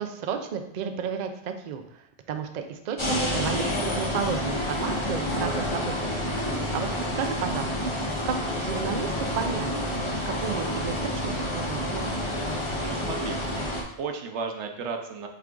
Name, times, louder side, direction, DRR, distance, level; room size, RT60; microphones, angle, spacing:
voice 1, 0.0-6.2 6.5-6.9 7.1-7.9 8.3-9.7 10.3-12.2, right 7 dB, 55° right, 6 dB, 0.5 m, -33 dB
sound 1, 3.0-13.8, left 1 dB, 30° left, 0.7 m, -29 dB
voice 2, 12.8-15.3, right 5 dB, 85° right, 4 dB, 1.0 m, -35 dB
5.7 x 2.5 x 3.7 m, 0.77 s
omnidirectional pair, 1.1 m